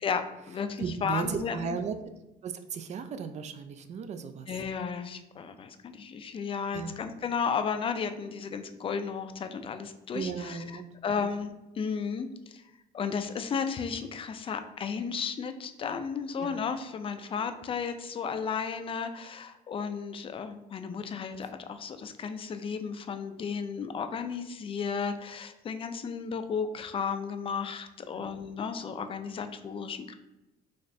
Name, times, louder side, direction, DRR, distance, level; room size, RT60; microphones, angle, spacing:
voice 1, 0.0-1.8 4.5-12.6 12.9-30.1, left 6 dB, 30° left, 8 dB, 0.4 m, -34 dB
voice 2, 0.8-2.0 2.4-4.5 6.7-6.9 10.1-10.8 11.2-11.3 16.4-16.5 17.4-17.5 28.2-28.3, right 6 dB, 45° right, 9 dB, 0.4 m, -35 dB
4.1 x 2.5 x 3.2 m, 0.96 s
cardioid pair, 110°, 17 cm